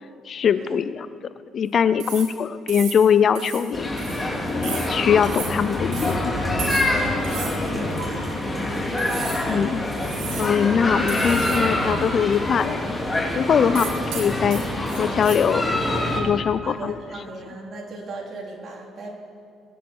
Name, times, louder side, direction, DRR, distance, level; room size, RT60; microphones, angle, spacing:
voice 1, 0.3-1.1 1.5-3.9 4.5-6.3 9.4-9.8 10.4-12.9 13.3-14.6 14.9-17.2, left 7 dB, 50° left, 14 dB, 0.5 m, -22 dB
sound 1, 2.0-2.4 2.7-3.1 3.4-3.7 4.0-4.2 4.6-4.9 5.2-5.6 5.9-6.2 6.6-7.0 7.2-7.6 8.0-8.1 9.0-9.5 9.9-10.6 11.1-11.6 11.9-12.0 13.8-15.4, right 7 dB, 85° right, 2.5 m, -34 dB
sound 2, 3.7-16.2, left 1 dB, 15° left, 3.2 m, -25 dB
voice 2, 7.2-8.6 13.5-13.9 16.6-19.1, right 2 dB, 50° right, -1 dB, 3.7 m, -38 dB
22.0 x 10.0 x 4.7 m, 2.2 s
supercardioid pair, 80°, 0 cm